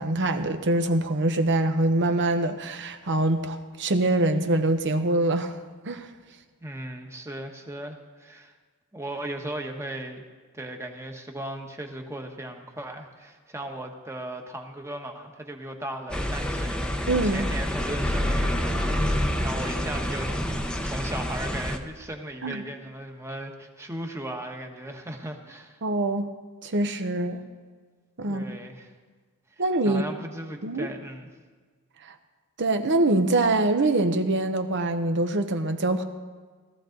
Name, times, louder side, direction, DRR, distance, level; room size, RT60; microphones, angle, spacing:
voice 1, 0.0-5.5 5.8-6.1 17.1-17.5 22.4-22.6 25.8-26.3 26.6-27.4 28.2-28.6 29.6-30.0 30.6-30.9 32.0-32.1 32.6-36.0, right 2 dB, 55° right, 7 dB, 1.0 m, -24 dB
voice 2, 6.6-8.5 8.9-10.2 10.5-20.3 20.6-25.8 28.3-28.9 29.8-31.3, right 1 dB, 10° right, 3 dB, 1.2 m, -37 dB
sound 1, 16.1-21.8, equal, 5° left, 0.8 m, -27 dB
17.5 x 13.5 x 3.9 m, 1.5 s
head